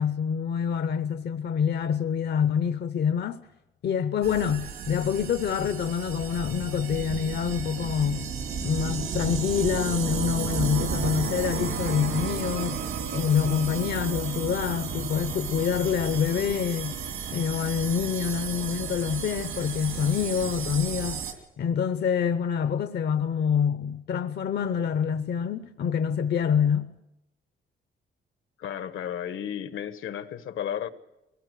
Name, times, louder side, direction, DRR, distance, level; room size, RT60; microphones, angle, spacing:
voice 1, 0.0-3.4 3.8-8.3 8.6-12.8 13.1-16.9 17.3-21.2 21.6-26.9, left 7 dB, 55° left, 0.7 m, -26 dB
sound 1, 4.2-21.3, right 6 dB, 80° right, 2.7 m, -33 dB
voice 2, 28.6-30.9, left 9 dB, 75° left, 1.3 m, -33 dB
22.5 x 18.5 x 8.2 m
wide cardioid pair, 165°, 21 cm